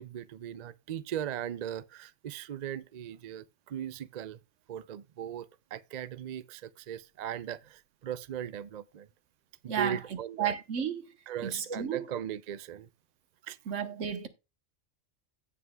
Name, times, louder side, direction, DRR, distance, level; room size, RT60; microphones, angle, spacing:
voice 1, 0.0-4.4 4.7-9.1 9.6-10.5 11.3-12.9 13.4-13.6, right 10 dB, 55° right, 0.5 m, -38 dB
voice 2, 9.7-10.0 10.4-11.1 11.4-12.0 13.7-14.3, right 8 dB, 80° right, 1.5 m, -32 dB
16.5 x 6.1 x 2.3 m
omnidirectional pair, 1.3 m